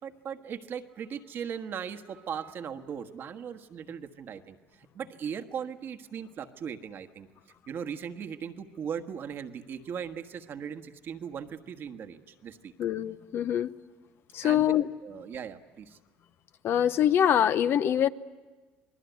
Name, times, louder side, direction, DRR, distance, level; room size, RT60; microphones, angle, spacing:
voice 1, 0.0-7.3 7.7-12.7 14.4-14.7 15.0-16.0, right 7 dB, 50° right, 7 dB, 1.4 m, -38 dB
voice 2, 12.8-13.7 14.3-14.9 16.6-18.1, left 10 dB, 55° left, 12 dB, 0.8 m, -24 dB
28.0 x 20.0 x 9.3 m, 1.3 s
supercardioid pair, 85°, 5 cm